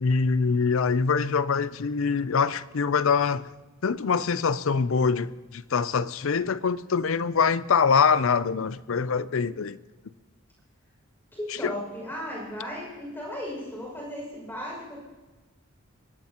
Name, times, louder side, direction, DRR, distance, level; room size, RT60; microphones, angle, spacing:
voice 1, 0.0-3.5 3.8-9.8 11.6-11.7, left 5 dB, 65° left, 0.5 m, -24 dB
voice 2, 11.3-15.0, left 1 dB, 10° left, 6.2 m, -36 dB
22.5 x 17.5 x 3.0 m
head